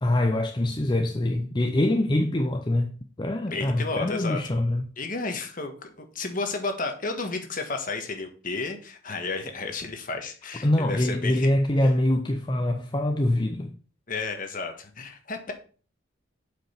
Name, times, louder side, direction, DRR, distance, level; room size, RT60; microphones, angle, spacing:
voice 1, 0.0-4.9 10.6-13.7, left 1 dB, 25° left, 0.6 m, -24 dB
voice 2, 3.5-4.4 5.0-11.5 14.1-15.5, left 3 dB, 45° left, 1.5 m, -32 dB
7.5 x 5.5 x 5.7 m
head